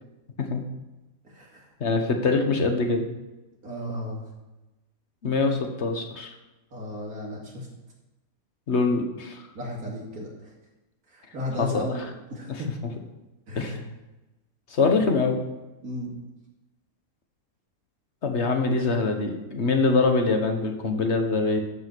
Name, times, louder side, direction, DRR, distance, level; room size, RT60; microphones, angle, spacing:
voice 1, 1.2-1.7 3.6-4.2 6.7-7.7 9.5-10.3 11.1-12.7 13.5-13.8 15.8-16.2, left 1 dB, 80° right, -2 dB, 2.8 m, -34 dB
voice 2, 1.8-3.1 5.2-6.3 8.7-9.4 11.6-12.1 12.5-12.6 13.5-13.8 14.7-15.4 18.2-21.6, left 3 dB, 50° left, 5 dB, 1.5 m, -24 dB
13.0 x 5.5 x 6.1 m, 1.1 s
omnidirectional pair, 1.5 m